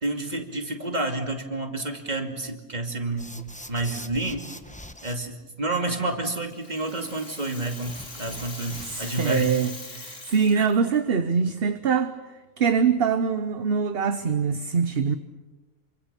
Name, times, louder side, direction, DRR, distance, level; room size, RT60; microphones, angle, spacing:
voice 1, 0.0-3.4 3.7-4.5 5.0-9.5 10.5-10.6, right 2 dB, 35° right, 4 dB, 2.6 m, -29 dB
sound 1, 3.2-5.2 7.8-9.2, left 1 dB, 5° left, 0.9 m, -43 dB
Rattle (instrument), 6.2-11.0, left 3 dB, 70° left, 3.4 m, -41 dB
voice 2, 8.8-12.1 12.6-15.2, right 6 dB, 50° right, 10 dB, 1.1 m, -23 dB
27.5 x 25.5 x 6.9 m, 1.2 s
omnidirectional pair, 1.3 m